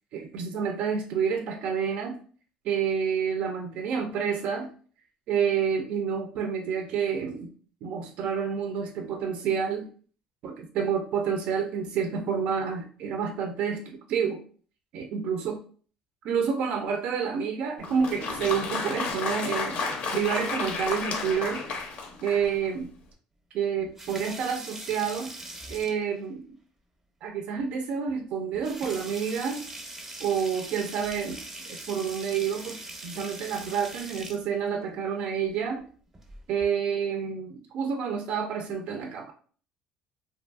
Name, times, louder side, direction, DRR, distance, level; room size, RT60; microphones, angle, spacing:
voice 1, 0.1-2.2 2.6-4.7 5.3-7.5 7.8-9.9 10.4-14.4 14.9-15.6 16.2-19.8 20.1-21.6 22.2-22.9 23.5-25.3 25.7-26.5 27.2-29.6 30.2-35.9 36.5-39.3, right 7 dB, 65° right, 4 dB, 0.3 m, -29 dB
Applause, 17.8-22.6, left 4 dB, 60° left, 0.5 m, -32 dB
sound 1, 23.8-26.2 27.6-27.7 28.1-28.2 28.5-34.4 36.1-36.6, right 2 dB, 15° right, 0.6 m, -41 dB
2.5 x 2.4 x 2.3 m, 0.43 s
cardioid pair, 125°, 2 cm